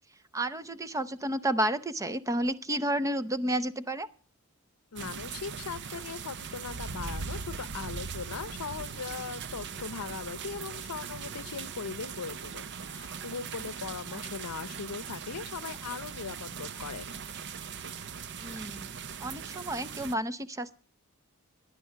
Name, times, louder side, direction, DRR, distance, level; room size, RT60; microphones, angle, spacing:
voice 1, 0.3-4.1 18.4-18.9 19.2-20.7, right 1 dB, 15° right, 0.6 m, -31 dB
voice 2, 4.9-17.2, left 5 dB, 90° left, 0.6 m, -39 dB
sound 1, 5.0-20.1, right 6 dB, 55° right, 0.6 m, -40 dB
17.0 x 11.0 x 5.7 m
head